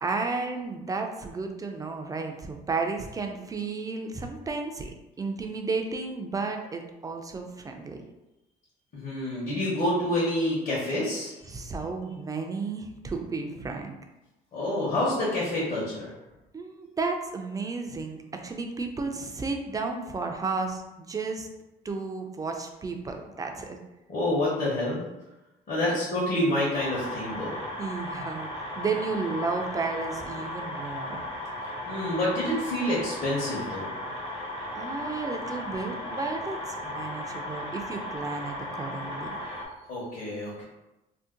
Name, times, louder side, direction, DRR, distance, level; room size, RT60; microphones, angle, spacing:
voice 1, 0.0-4.9 5.2-8.0 11.5-14.0 16.5-21.5 21.8-23.8 25.9-26.0 27.8-31.3 34.7-39.3, right 4 dB, 20° right, 3 dB, 0.4 m, -33 dB
voice 2, 8.9-11.3 14.5-16.1 24.1-25.0 25.7-27.6 31.9-33.9 39.9-40.6, left 1 dB, 50° left, -7 dB, 1.0 m, -28 dB
sound 1, 26.7-39.7, left 1 dB, 30° left, 0.7 m, -36 dB
2.7 x 2.1 x 3.6 m, 0.98 s
cardioid pair, 110°, 17 cm